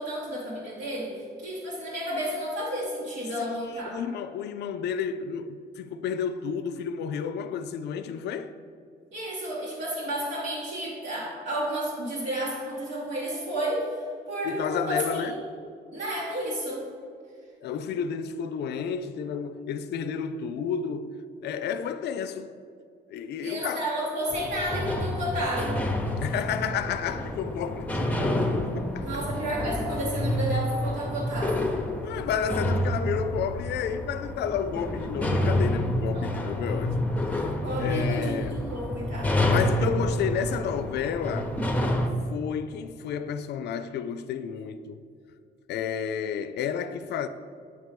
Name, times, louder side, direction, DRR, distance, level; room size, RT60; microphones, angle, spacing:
voice 1, 0.0-4.0 9.1-15.4 15.9-16.8 23.4-25.8 29.0-31.6 36.1-36.3 37.6-39.4, right 1 dB, 85° right, 1.5 m, -31 dB
voice 2, 3.4-8.5 14.4-15.4 17.6-21.1 21.4-22.5 23.1-23.9 26.2-29.2 32.0-37.1 37.8-38.7 39.4-41.6 42.3-45.0 45.7-47.3, left 7 dB, 70° left, 0.4 m, -31 dB
sound 1, 24.3-42.1, left 1 dB, 10° left, 0.7 m, -28 dB
8.2 x 3.1 x 5.1 m
cardioid pair, 95°, 18 cm